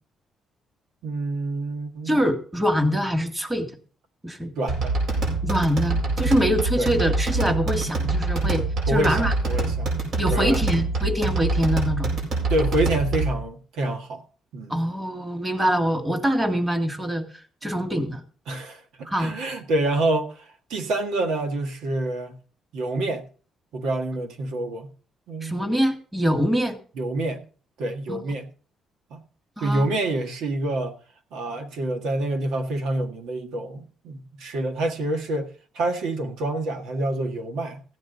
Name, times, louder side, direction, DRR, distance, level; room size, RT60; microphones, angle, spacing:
voice 1, 1.0-2.2 4.6-5.0 6.8-6.9 8.9-9.9 10.3-10.6 12.5-14.2 14.5-14.8 18.5-22.4 22.7-23.3 23.7-24.9 25.3-25.6 27.0-27.4 27.8-28.5 29.1-29.2 29.6-31.0 31.3-37.8, right 2 dB, 85° right, 1.7 m, -27 dB
voice 2, 2.1-3.8 4.2-4.5 5.4-9.3 10.2-12.1 14.7-17.2 17.6-18.2 19.1-19.3 25.4-26.8 28.1-28.2 29.6-29.9, equal, 15° right, 1.9 m, -24 dB
sound 1, 4.7-13.4, right 3 dB, 70° right, 7.8 m, -25 dB
15.5 x 9.7 x 4.0 m
cardioid pair, 90°, 0 cm